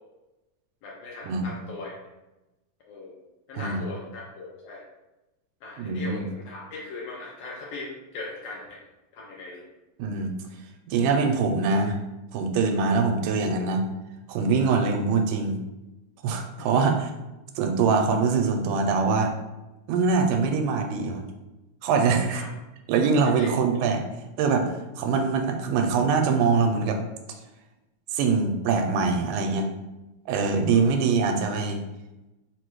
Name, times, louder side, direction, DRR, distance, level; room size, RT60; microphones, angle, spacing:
voice 1, 0.8-1.9 2.9-3.2 3.5-4.8 5.6-8.8 9.1-9.6 16.6-16.7 22.3-22.5 23.2-23.5, left 3 dB, 80° left, -3 dB, 1.5 m, -39 dB
voice 2, 5.8-6.3 10.0-10.3 10.9-12.0 12.3-13.9 14.3-15.6 16.2-17.1 17.6-19.3 19.9-21.2 21.8-22.4 22.9-24.0 24.4-27.0 28.1-29.7 30.3-31.8, right 4 dB, 80° right, 4 dB, 2.1 m, -23 dB
4.9 x 2.2 x 4.5 m, 1.0 s
omnidirectional pair, 3.6 m